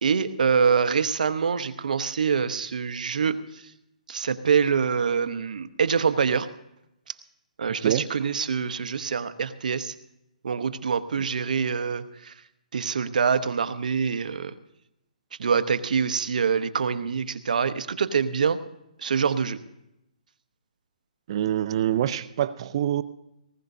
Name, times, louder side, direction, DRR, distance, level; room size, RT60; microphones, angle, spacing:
voice 1, 0.0-3.6 4.1-6.5 7.6-9.9 10.4-12.3 12.7-14.5 15.4-18.6 19.0-19.6, right 6 dB, 75° right, 11 dB, 0.9 m, -25 dB
voice 2, 21.3-23.0, right 11 dB, 45° right, 15 dB, 0.5 m, -25 dB
19.0 x 17.5 x 2.7 m, 0.84 s
hypercardioid pair, 155°, 4 cm